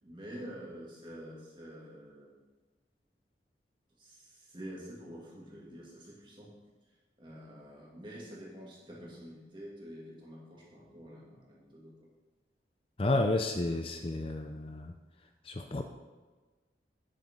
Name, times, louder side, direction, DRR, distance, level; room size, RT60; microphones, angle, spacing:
voice 1, 0.0-2.3 4.0-6.5 7.2-11.9, equal, 25° right, -5 dB, 2.5 m, -47 dB
voice 2, 13.0-14.9 15.5-15.8, left 2 dB, 30° left, 5 dB, 0.5 m, -31 dB
9.6 x 9.2 x 3.8 m, 1.3 s
head